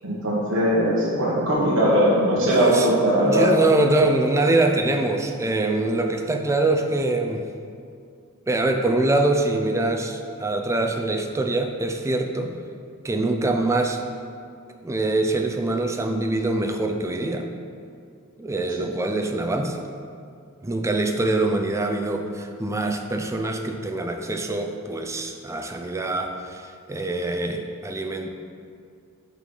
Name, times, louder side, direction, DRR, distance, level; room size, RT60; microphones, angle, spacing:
voice 1, 0.0-3.5 18.8-18.9, equal, 60° right, -7 dB, 1.2 m, -20 dB
voice 2, 2.4-3.0 3.2-7.5 8.5-12.5 13.0-14.0 14.8-17.5 18.4-19.9 20.6-28.3, right 2 dB, 15° right, 4 dB, 0.4 m, -24 dB
9.0 x 4.0 x 3.7 m, 2.3 s
head